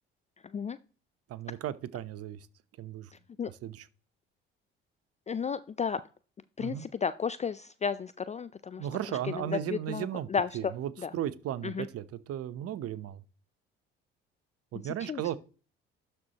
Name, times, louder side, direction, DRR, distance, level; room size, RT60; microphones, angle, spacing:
voice 1, 1.3-2.4 2.8-3.1 3.4-3.9 6.6-6.9 8.8-10.3 10.5-13.2 14.7-15.4, right 11 dB, 55° right, 0.7 m, -35 dB
voice 2, 5.3-6.0 6.6-8.9 9.7-10.7 11.0-11.1 11.6-11.9 15.1-15.2, left 6 dB, 25° left, 0.4 m, -33 dB
12.0 x 4.4 x 2.9 m
hypercardioid pair, 55°, 29 cm